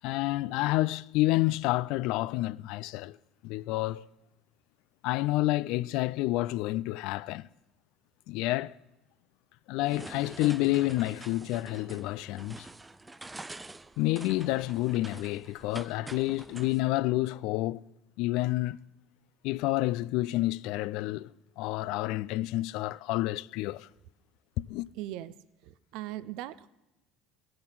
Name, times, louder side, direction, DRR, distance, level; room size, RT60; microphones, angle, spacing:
voice 1, 0.0-3.2 3.4-4.1 5.0-7.5 8.3-8.7 9.7-12.7 14.0-17.9 18.2-18.8 19.4-23.9 24.6-24.9, left 18 dB, 70° left, 0.3 m, -29 dB
sound 1, 9.8-16.8, right 2 dB, 15° right, 0.4 m, -46 dB
voice 2, 25.0-25.3 25.6-26.7, right 14 dB, 70° right, 0.5 m, -39 dB
16.5 x 7.8 x 5.7 m
hypercardioid pair, 75°, 0 cm